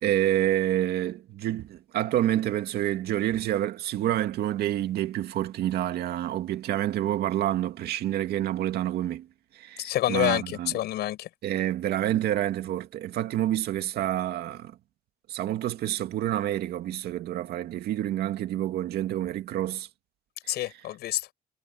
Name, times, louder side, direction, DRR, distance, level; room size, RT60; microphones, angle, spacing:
voice 1, 0.0-9.3 9.6-10.7 11.4-14.7 15.3-19.9, right 12 dB, 70° right, 2.3 m, -28 dB
voice 2, 9.8-11.3 20.5-21.3, left 14 dB, 75° left, 6.6 m, -28 dB
cardioid pair, 110°, 17 cm